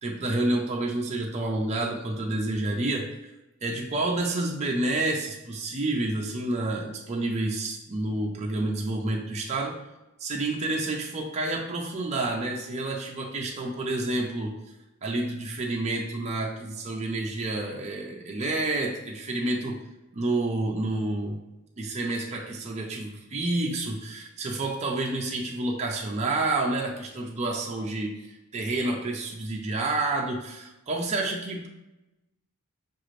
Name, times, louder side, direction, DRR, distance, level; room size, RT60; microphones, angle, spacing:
voice 1, 0.0-3.1 3.6-9.8 10.2-14.5 15.0-19.8 20.1-21.4 21.8-31.7, right 2 dB, 30° right, -1 dB, 0.5 m, -29 dB
6.1 x 2.5 x 3.1 m, 0.97 s
head